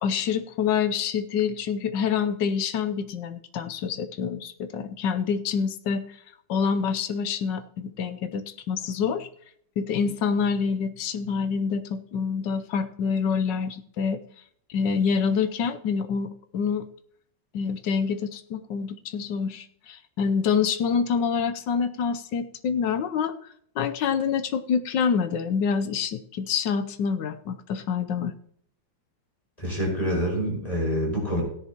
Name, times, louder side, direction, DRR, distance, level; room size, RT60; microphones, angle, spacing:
voice 1, 0.0-6.0 6.5-9.3 9.8-14.2 14.7-16.9 17.5-23.3 23.8-28.3, left 6 dB, 70° left, 10 dB, 1.3 m, -26 dB
voice 2, 29.6-31.4, equal, 20° left, -2 dB, 5.6 m, -26 dB
16.5 x 10.5 x 2.9 m, 0.66 s
omnidirectional pair, 2.1 m